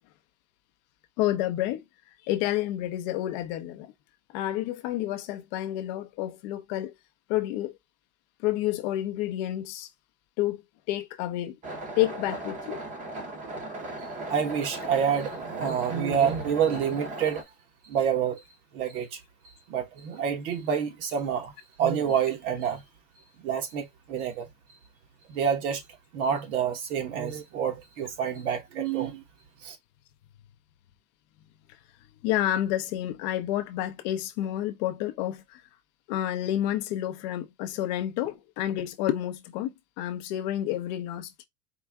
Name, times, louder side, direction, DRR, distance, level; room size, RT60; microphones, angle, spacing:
voice 1, 1.2-1.8 2.3-3.9 4.3-6.9 7.3-7.7 8.4-9.9 10.4-11.6 12.0-12.8 32.2-35.6 36.1-41.3, left 13 dB, 30° left, 0.4 m, -29 dB
sound 1, 11.6-17.4, right 2 dB, 15° right, 0.7 m, -38 dB
voice 2, 14.3-17.4 17.8-18.4 18.7-19.2 19.7-21.5 21.8-22.8 23.4-24.5 25.3-25.8 26.1-29.2 29.6-29.8, right 8 dB, 60° right, 1.3 m, -28 dB
4.6 x 2.1 x 3.4 m
supercardioid pair, 145°, 49 cm